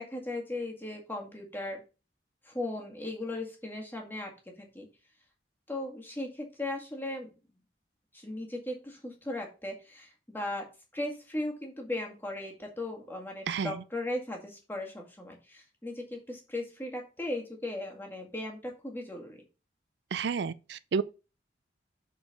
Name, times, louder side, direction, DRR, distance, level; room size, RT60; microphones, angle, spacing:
voice 1, 0.0-1.8 2.4-4.3 4.6-4.9 5.7-7.3 8.1-10.7 10.9-19.4, left 1 dB, 10° left, 1.9 m, -37 dB
voice 2, 20.1-21.0, right 5 dB, 70° right, 0.4 m, -30 dB
6.7 x 4.7 x 5.2 m
head